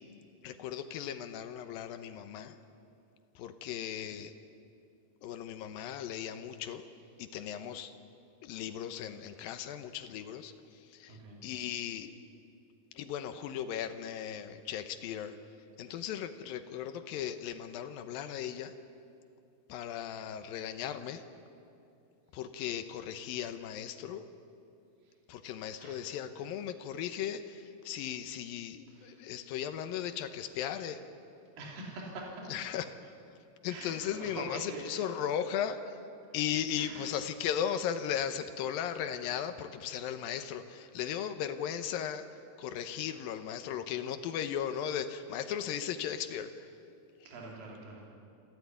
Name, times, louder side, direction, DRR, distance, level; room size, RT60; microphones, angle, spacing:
voice 1, 0.4-2.6 3.4-4.3 5.2-6.8 7.2-7.9 8.4-12.1 12.9-15.4 15.8-18.7 19.7-21.2 22.3-24.2 25.3-31.0 32.5-32.9 33.6-36.0 36.3-42.3 42.6-46.7, left 9 dB, 75° left, 9 dB, 2.5 m, -37 dB
voice 2, 11.1-11.4 25.8-26.1 28.9-29.3 31.6-32.5 33.7-34.9 36.8-37.1 47.2-48.1, right 2 dB, 60° right, -2 dB, 4.6 m, -44 dB
27.5 x 12.5 x 9.5 m, 2.6 s
omnidirectional pair, 4.6 m